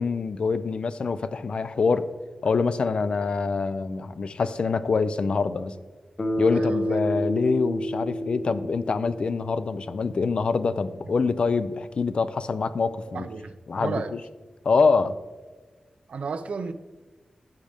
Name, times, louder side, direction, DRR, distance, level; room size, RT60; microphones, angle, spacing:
voice 1, 0.0-2.1 2.4-5.7 6.4-13.3 13.7-14.2 14.6-15.2, left 4 dB, 50° left, 0.4 m, -25 dB
Bass guitar, 6.2-10.2, equal, 35° left, 1.1 m, -30 dB
voice 2, 6.5-7.0 13.1-13.5 13.8-14.1 16.1-16.7, right 4 dB, 70° right, 0.5 m, -32 dB
14.5 x 5.2 x 3.5 m
wide cardioid pair, 160°, 2 cm